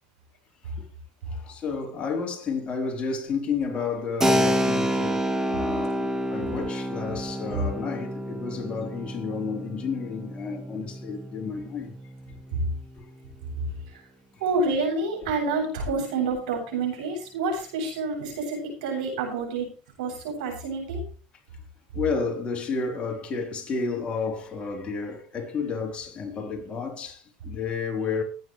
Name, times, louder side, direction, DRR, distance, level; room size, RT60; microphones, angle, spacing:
voice 1, 1.3-11.9 21.9-28.2, left 5 dB, 30° left, 4.0 m, -31 dB
Keyboard (musical), 4.2-12.6, equal, 15° right, 1.7 m, -28 dB
voice 2, 14.4-19.7 20.0-21.0, right 3 dB, 85° right, 7.8 m, -28 dB
20.0 x 9.3 x 3.3 m
supercardioid pair, 110°, 4 cm